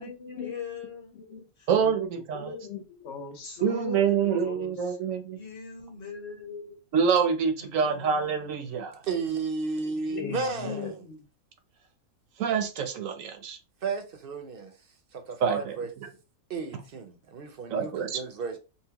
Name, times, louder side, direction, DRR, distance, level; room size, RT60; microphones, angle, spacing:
voice 1, 0.0-1.2 1.6-1.9 3.4-5.0 5.3-7.1 7.6-8.4 10.2-11.0, left 5 dB, 30° left, 1.3 m, -41 dB
voice 2, 1.1-1.5 2.3-4.0 4.3-4.4 9.8-11.3, left 4 dB, 55° left, 1.1 m, -38 dB
voice 3, 1.7-2.5 3.6-5.4 6.9-9.0 12.4-13.6 15.4-16.1 17.7-18.2, right 6 dB, 70° right, 1.0 m, -26 dB
voice 4, 9.0-11.0 13.8-14.7 15.1-15.9 16.5-18.6, right 4 dB, 50° right, 0.8 m, -33 dB
5.5 x 2.2 x 2.9 m
omnidirectional pair, 1.5 m